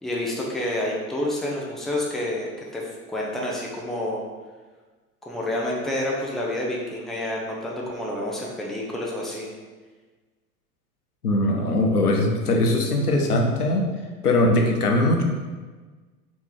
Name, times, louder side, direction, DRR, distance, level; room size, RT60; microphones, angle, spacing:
voice 1, 0.0-4.2 5.2-9.5, left 1 dB, ahead, -3 dB, 0.5 m, -29 dB
voice 2, 11.2-13.9 14.2-15.2, left 1 dB, 85° left, 2 dB, 0.7 m, -21 dB
3.3 x 3.1 x 4.6 m, 1.4 s
figure-of-eight pair, 85°, 45 cm